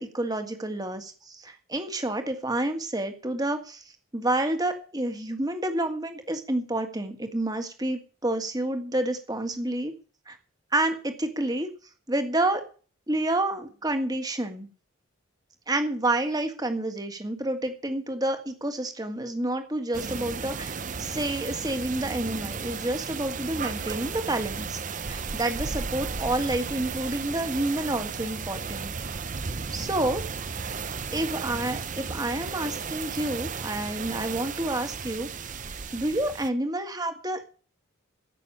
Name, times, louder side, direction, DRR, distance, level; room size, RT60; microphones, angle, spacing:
voice 1, 0.0-9.9 10.3-10.4 10.7-11.7 12.1-12.6 13.1-14.7 15.7-24.8 25.1-28.9 29.7-30.2 31.1-37.5, right 1 dB, 20° right, 7 dB, 1.7 m, -29 dB
sound 1, 19.9-36.5, right 5 dB, 35° right, 0.7 m, -34 dB
15.0 x 6.5 x 8.7 m, 0.39 s
head